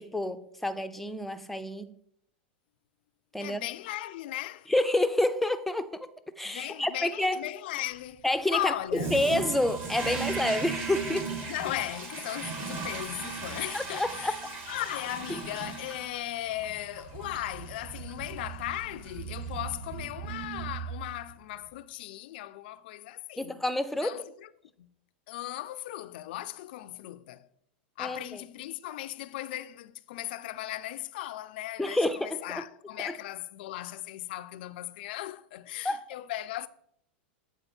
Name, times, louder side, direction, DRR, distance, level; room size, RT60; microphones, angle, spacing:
voice 1, 0.0-2.0 3.3-3.6 4.7-6.1 6.4-7.4 8.2-11.3 13.7-14.6 15.3-15.4 23.4-24.2 28.0-28.4 31.8-32.6 33.0-33.1 35.8-36.0, left 1 dB, 5° left, 0.4 m, -29 dB
voice 2, 3.4-4.7 6.4-8.2 8.5-9.1 11.4-14.4 14.7-23.6 24.0-24.5 24.8-24.9 25.3-27.5 28.0-36.7, left 15 dB, 65° left, 0.4 m, -37 dB
Toilet flush, 8.9-21.2, right 4 dB, 35° right, 1.5 m, -37 dB
8.0 x 3.8 x 4.3 m
hypercardioid pair, 105°, 6 cm